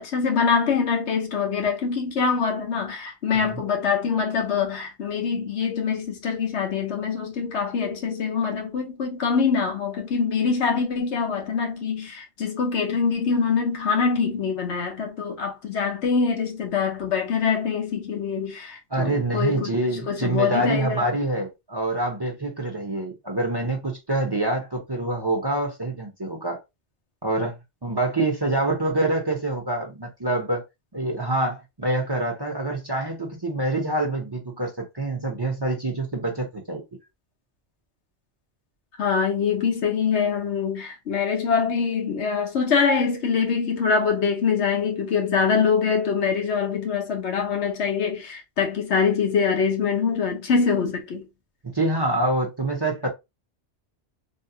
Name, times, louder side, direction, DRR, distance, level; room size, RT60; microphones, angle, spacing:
voice 1, 0.0-19.7 20.1-21.1 39.0-51.3, left 5 dB, 80° left, 1.2 m, -24 dB
voice 2, 18.9-26.6 27.2-30.6 30.9-36.8 51.7-53.1, right 2 dB, 25° right, 0.6 m, -26 dB
3.5 x 2.2 x 2.7 m
omnidirectional pair, 1.1 m